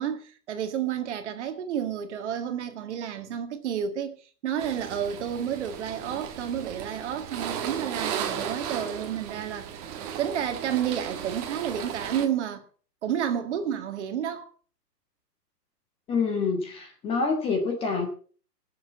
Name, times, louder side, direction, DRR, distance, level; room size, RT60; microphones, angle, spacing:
voice 1, 0.0-12.7 13.0-14.5, right 9 dB, 45° right, 1.9 m, -31 dB
sound 1, 4.6-12.3, right 8 dB, 25° right, 1.5 m, -35 dB
voice 2, 16.1-18.1, left 4 dB, 10° left, 1.4 m, -26 dB
19.0 x 7.3 x 5.6 m
hypercardioid pair, 160°, 49 cm